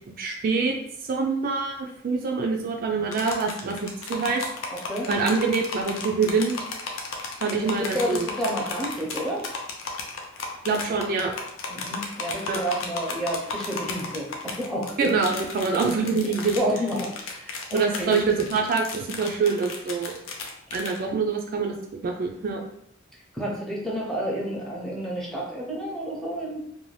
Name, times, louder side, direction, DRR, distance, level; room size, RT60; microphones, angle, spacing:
voice 1, 0.1-0.7 1.0-4.4 5.1-6.6 7.4-8.2 10.6-11.3 12.5-12.6 15.0-16.6 17.7-20.2 20.7-21.7 22.0-22.6, right 4 dB, 45° right, 1 dB, 0.3 m, -25 dB
sound 1, 3.1-21.0, left 4 dB, 90° left, 0.5 m, -34 dB
voice 2, 4.7-5.1 7.5-9.5 11.7-15.1 16.6-18.2 23.3-26.6, equal, ahead, -3 dB, 0.6 m, -30 dB
2.6 x 2.1 x 3.2 m, 0.75 s
head